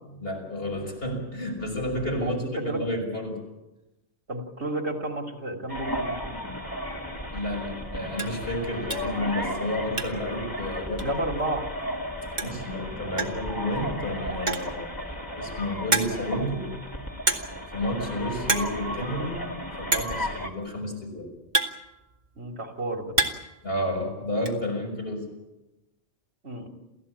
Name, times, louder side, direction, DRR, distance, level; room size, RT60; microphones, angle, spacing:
voice 1, 0.0-2.4 2.7-3.5 7.3-11.1 12.4-15.0 15.2-16.7 17.7-19.5 19.8-21.3 23.6-25.3, left 1 dB, 55° left, 1 dB, 6.3 m, -31 dB
voice 2, 2.2-2.8 4.3-6.3 11.0-11.7 22.4-23.1 26.4-26.7, right 1 dB, 70° right, 3 dB, 3.4 m, -31 dB
sound 1, 5.7-20.5, equal, 20° left, 2.4 m, -34 dB
sound 2, 7.2-7.4 7.7-7.8 8.1-8.4 8.9-9.2 9.5-10.4 10.6-10.7 11.0-11.1 12.1-12.2 12.4-12.7 13.2-13.5 14.3-14.8 15.3-15.4 15.9-16.4 17.3-17.7 17.9-18.2 18.4-18.8 19.0-19.1 19.9-20.2 21.0-22.4 22.8-23.6 23.8-24.5, right 2 dB, 40° right, 2.2 m, -28 dB
28.5 x 16.0 x 8.7 m, 1.0 s
omnidirectional pair, 1.2 m